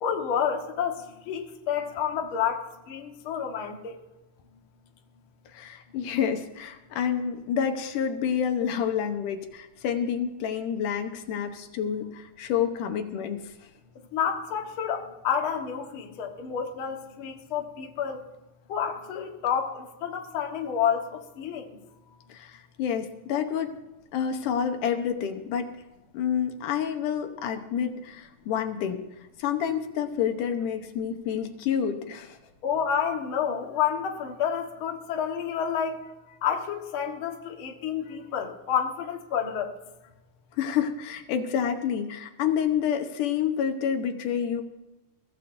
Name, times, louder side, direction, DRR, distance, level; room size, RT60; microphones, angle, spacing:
voice 1, 0.0-4.0 14.1-18.2 18.7-21.8 32.6-39.7, left 8 dB, 50° left, 2 dB, 1.8 m, -29 dB
voice 2, 5.5-13.5 22.3-23.8 24.1-25.7 26.1-29.0 29.4-32.4 40.6-44.6, left 8 dB, 75° left, 5 dB, 2.5 m, -28 dB
23.0 x 15.5 x 2.6 m, 1.1 s
omnidirectional pair, 3.8 m